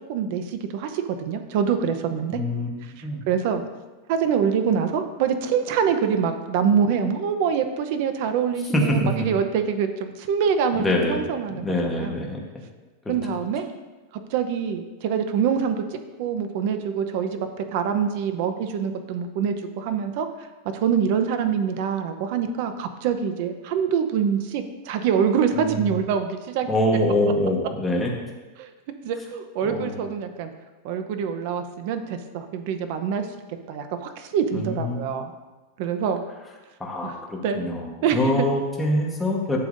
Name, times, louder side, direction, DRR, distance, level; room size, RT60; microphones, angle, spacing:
voice 1, 0.0-2.4 3.0-3.6 4.1-12.2 13.1-13.7 14.3-17.4 17.7-20.3 20.7-26.7 28.6-28.7 29.0-30.5 30.8-33.3 33.7-35.3 35.8-36.2 37.0-37.2 37.4-37.6 38.0-38.3, right 7 dB, 50° right, 8 dB, 0.7 m, -25 dB
voice 2, 2.3-3.2 8.7-9.1 10.7-11.2 11.5-12.4 13.0-13.1 25.5-25.9 26.7-28.1 29.6-30.0 34.5-35.0 36.8-39.6, left 1 dB, 5° left, -2 dB, 1.2 m, -25 dB
11.5 x 6.9 x 2.6 m, 1.2 s
supercardioid pair, 165°, 0 cm